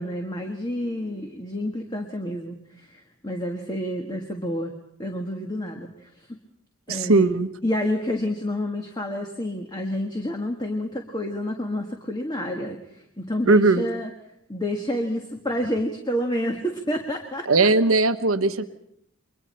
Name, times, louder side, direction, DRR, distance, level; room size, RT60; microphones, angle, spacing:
voice 1, 0.0-4.7 5.0-6.4 6.9-7.3 7.6-14.1 14.5-17.7, left 1 dB, 20° left, 3 dB, 1.6 m, -29 dB
voice 2, 6.9-7.5 13.5-13.8 17.5-18.6, right 3 dB, 75° right, 9 dB, 1.1 m, -19 dB
29.5 x 23.0 x 4.4 m, 0.72 s
head